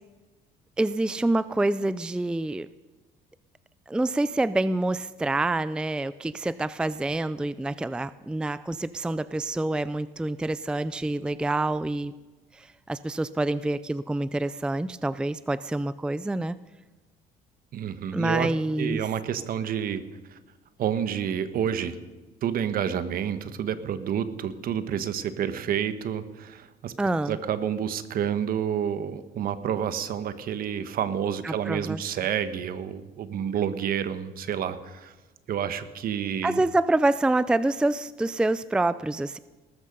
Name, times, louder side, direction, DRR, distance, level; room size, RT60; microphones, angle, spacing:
voice 1, 0.8-2.7 3.9-12.1 12.5-16.6 18.1-19.1 27.0-27.4 31.4-32.0 36.4-39.4, right 2 dB, 5° right, 16 dB, 0.4 m, -27 dB
voice 2, 17.7-18.5 18.8-20.0 20.3-20.4 20.8-22.0 22.4-26.9 27.3-35.1 35.5-36.6, right 8 dB, 60° right, 12 dB, 1.2 m, -29 dB
19.0 x 13.5 x 5.4 m, 1.2 s
cardioid pair, 110°, 17 cm